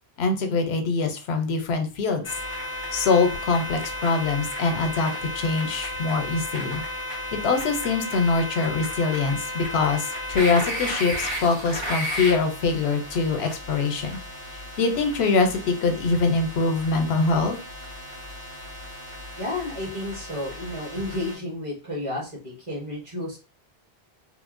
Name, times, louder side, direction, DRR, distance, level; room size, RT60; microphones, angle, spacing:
voice 1, 0.2-2.3 2.9-6.8 7.3-14.2 14.5-17.6, left 4 dB, 80° left, 6 dB, 0.8 m, -24 dB
sound 1, 2.2-21.4, left 1 dB, 55° right, 1.7 m, -34 dB
voice 2, 19.4-23.4, left 1 dB, 35° right, -3 dB, 0.9 m, -32 dB
3.1 x 2.1 x 2.4 m, 0.33 s
omnidirectional pair, 1.1 m